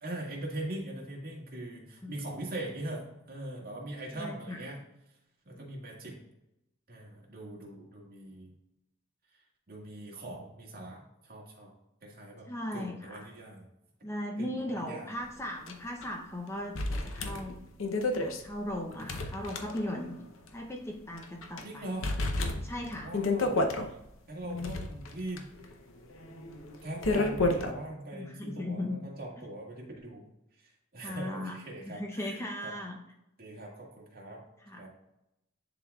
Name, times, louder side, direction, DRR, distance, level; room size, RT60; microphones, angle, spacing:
voice 1, 0.0-4.8 5.5-6.2 6.9-8.5 9.3-9.4 9.7-11.7 12.0-12.5 12.7-13.7 14.4-15.1 21.6-22.1 23.0-23.7 24.3-25.5 26.8-30.3 30.6-32.7 33.4-34.4 34.8-34.9, right 1 dB, 50° right, -2 dB, 1.7 m, -41 dB
voice 2, 4.1-4.6 5.5-5.7 12.5-13.3 14.0-17.6 18.1-20.2 20.5-21.9 22.6-23.1 24.4-24.7 28.1-29.0 31.0-31.6 31.9-33.0 34.6-34.8, left 1 dB, 15° left, 1 dB, 0.6 m, -37 dB
sound 1, 15.7-15.8 16.0-16.1 16.8-20.2 20.5-20.6 21.2-21.6 22.0-23.9 24.4-27.7, left 2 dB, 75° left, 0.7 m, -31 dB
10.5 x 3.9 x 2.3 m, 0.88 s
head